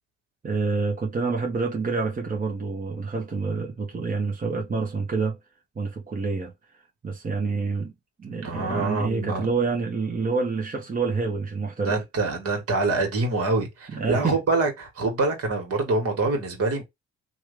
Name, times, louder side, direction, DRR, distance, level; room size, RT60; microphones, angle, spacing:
voice 1, 0.4-5.4 5.7-7.9 8.2-12.0 13.9-14.4, right 4 dB, 30° right, 1.1 m, -27 dB
voice 2, 8.4-9.5 11.8-16.8, right 3 dB, 55° right, 1.8 m, -25 dB
3.0 x 2.5 x 3.3 m
hypercardioid pair, 55°, 29 cm